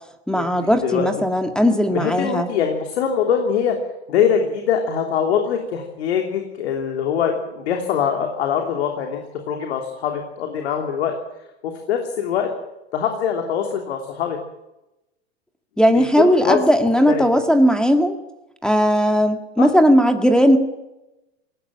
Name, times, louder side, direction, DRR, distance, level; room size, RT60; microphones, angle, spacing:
voice 1, 0.3-2.5 15.8-18.1 18.6-20.6, equal, ahead, 6 dB, 1.9 m, -17 dB
voice 2, 1.9-3.8 4.1-11.1 11.6-12.5 12.9-14.4 15.9-16.6 17.1-17.2 19.6-19.7, left 8 dB, 75° left, 3 dB, 3.2 m, -23 dB
20.0 x 18.0 x 9.0 m, 0.95 s
hypercardioid pair, 110°, 32 cm